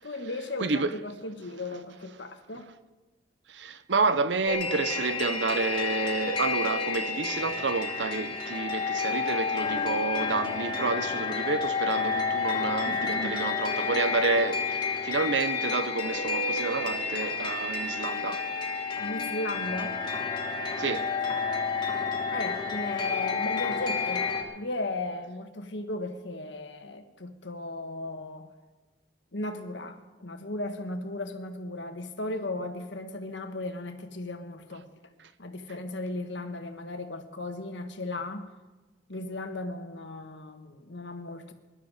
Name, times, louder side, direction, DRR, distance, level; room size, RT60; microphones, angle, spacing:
voice 1, 0.0-2.7 12.8-13.4 19.0-20.0 22.3-24.2 24.6-28.5 29.3-34.9 35.4-38.5 39.1-41.5, left 2 dB, 75° left, 1.5 m, -36 dB
voice 2, 0.6-0.9 3.5-18.5 20.8-21.1, right 4 dB, 70° right, 0.8 m, -29 dB
sound 1, 4.5-24.4, left 4 dB, 25° left, 2.4 m, -30 dB
21.5 x 12.0 x 4.9 m
head